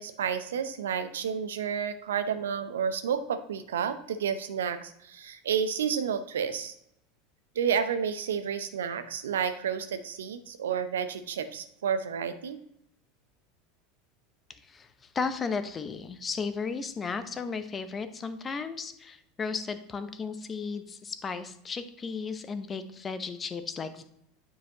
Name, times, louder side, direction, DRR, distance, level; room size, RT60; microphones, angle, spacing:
voice 1, 0.0-6.7 7.6-12.6, right 7 dB, 75° right, 11 dB, 0.6 m, -31 dB
voice 2, 15.1-24.0, left 5 dB, 25° left, 10 dB, 0.7 m, -34 dB
9.0 x 5.0 x 2.9 m, 0.76 s
hypercardioid pair, 80°, 0 cm